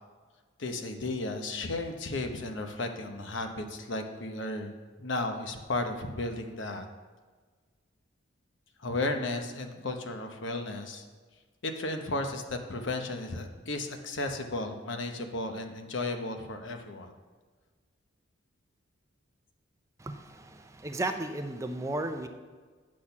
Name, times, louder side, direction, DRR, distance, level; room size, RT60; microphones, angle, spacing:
voice 1, 0.6-6.9 8.8-11.1 11.6-17.1, left 2 dB, 65° left, 5 dB, 1.0 m, -34 dB
voice 2, 20.0-22.3, right 2 dB, 15° right, 7 dB, 0.5 m, -34 dB
8.5 x 6.4 x 5.8 m, 1.4 s
head